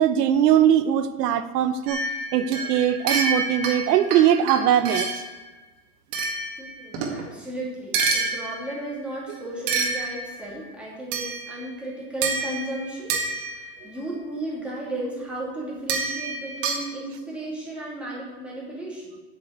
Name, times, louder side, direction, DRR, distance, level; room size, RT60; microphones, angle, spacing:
voice 1, 0.0-2.0 2.3-5.1, right 10 dB, 80° right, 11 dB, 0.9 m, -20 dB
sound 1, 1.9-5.3 6.1-7.2 7.9-8.9 9.7-10.5 11.1-11.7 12.2-13.9 15.9-16.9, right 4 dB, 50° right, 2.1 m, -28 dB
voice 2, 6.6-19.1, right 1 dB, ahead, -6 dB, 2.5 m, -34 dB
8.4 x 7.2 x 8.0 m, 1.2 s
supercardioid pair, 165°, 47 cm